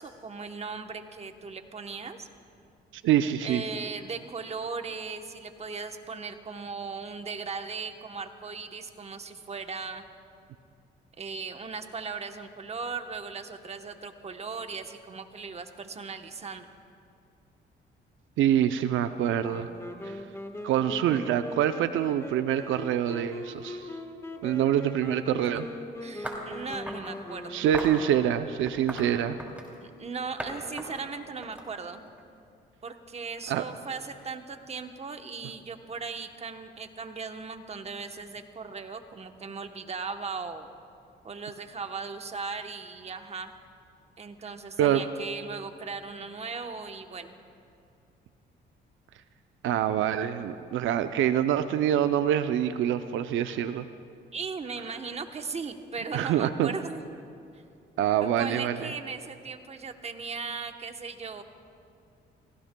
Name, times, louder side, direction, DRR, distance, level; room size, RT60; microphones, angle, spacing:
voice 1, 0.0-2.3 3.4-10.1 11.2-16.7 26.0-27.7 29.8-32.1 32.8-40.7 41.2-43.6 44.2-47.4 54.3-57.0 58.2-61.4, right 4 dB, 30° right, 7 dB, 1.0 m, -38 dB
voice 2, 2.9-3.6 18.4-19.7 20.0-20.2 20.6-23.9 24.4-25.7 27.5-29.4 33.5-33.6 44.8-45.0 49.6-53.8 56.1-56.7 58.0-58.8, right 10 dB, 80° right, 10 dB, 0.5 m, -25 dB
Wind instrument woodwind instrument, 19.4-28.4, left 1 dB, 15° left, 1.3 m, -41 dB
sound 1, 26.2-27.1 27.7-28.0 28.7-29.8 30.4-30.5 30.8-32.2, equal, 5° right, 2.8 m, -38 dB
29.0 x 16.5 x 2.2 m, 2.4 s
cardioid pair, 90°, 20 cm